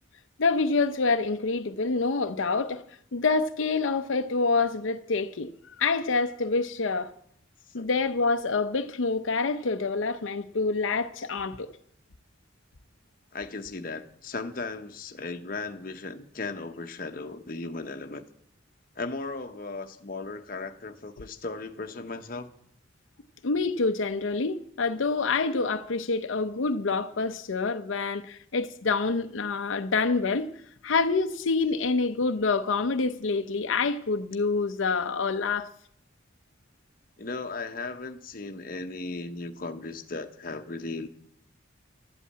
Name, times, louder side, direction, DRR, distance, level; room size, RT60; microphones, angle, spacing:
voice 1, 0.4-2.8 3.1-5.5 5.8-7.1 7.7-11.7 23.4-30.5 30.8-35.7, left 4 dB, 80° left, 0.7 m, -27 dB
voice 2, 13.3-18.2 19.0-22.5 37.2-41.1, left 3 dB, 45° left, 0.9 m, -36 dB
12.0 x 8.4 x 8.7 m
head